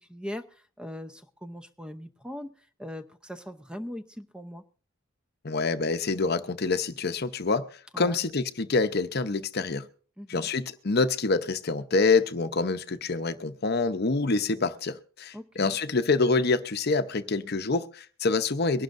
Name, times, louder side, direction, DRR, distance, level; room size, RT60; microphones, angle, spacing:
voice 1, 0.1-4.6 7.9-8.2 10.2-10.5 15.3-15.8, equal, 5° right, 0.7 m, -40 dB
voice 2, 5.4-9.9 10.3-18.8, left 3 dB, 50° left, 0.8 m, -26 dB
23.5 x 11.5 x 2.6 m
head